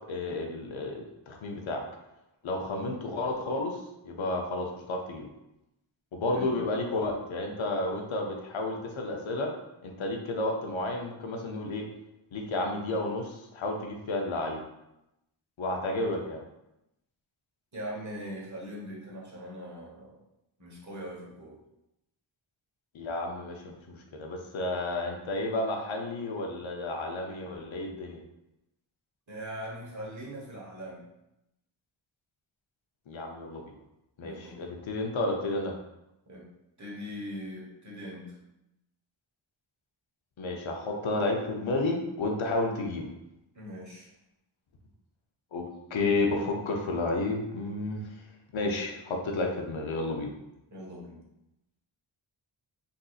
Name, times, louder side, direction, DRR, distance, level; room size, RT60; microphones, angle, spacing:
voice 1, 0.1-1.8 2.4-3.8 4.0-5.3 6.1-9.5 9.8-11.8 12.3-14.6 15.6-16.4 22.9-28.2 33.1-33.6 34.2-35.7 40.4-43.1 45.5-45.6 45.9-48.0 48.5-50.3, left 2 dB, 75° left, 1 dB, 0.7 m, -31 dB
voice 2, 17.7-20.2 20.6-21.6 29.3-31.0 34.2-34.8 36.3-36.5 36.8-38.4 43.5-44.1 50.7-51.2, equal, 35° right, -4 dB, 1.1 m, -41 dB
3.9 x 2.6 x 2.4 m, 0.88 s
wide cardioid pair, 80°, 47 cm